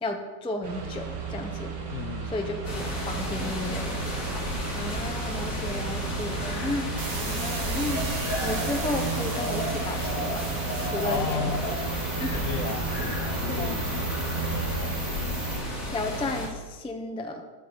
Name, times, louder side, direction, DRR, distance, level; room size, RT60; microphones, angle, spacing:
voice 1, 0.0-1.7 2.2-3.9 4.7-6.9 7.3-8.1 8.4-10.5 10.8-11.6 12.2-12.5 13.5-13.8 15.9-17.4, left 2 dB, 10° left, 4 dB, 0.4 m, -33 dB
sound 1, 0.6-14.7, right 5 dB, 75° right, 2.1 m, -35 dB
voice 2, 1.9-2.3 11.0-11.7 12.3-14.9, left 6 dB, 70° left, 7 dB, 0.8 m, -34 dB
sound 2, 2.6-16.5, left 1 dB, 50° left, 2.7 m, -32 dB
sound 3, 7.0-15.6, right 4 dB, 60° right, 1.8 m, -35 dB
8.2 x 6.9 x 7.9 m, 1.3 s
omnidirectional pair, 1.8 m